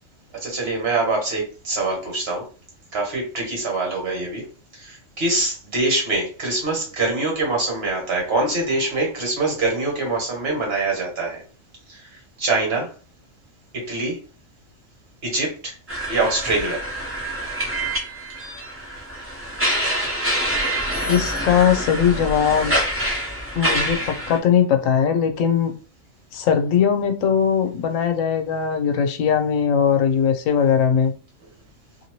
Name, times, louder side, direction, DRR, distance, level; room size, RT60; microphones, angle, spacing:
voice 1, 0.4-2.4 2.9-4.4 4.7-11.4 11.9-12.1 12.4-12.9 13.7-14.2 15.2-15.7 16.1-16.8, right 2 dB, 55° right, 1.5 m, -24 dB
sound 1, 15.9-24.4, right 1 dB, 15° right, 0.7 m, -26 dB
voice 2, 21.0-22.7 23.5-25.7 26.3-31.1, left 8 dB, 90° left, 1.0 m, -20 dB
2.8 x 2.7 x 2.9 m
omnidirectional pair, 1.3 m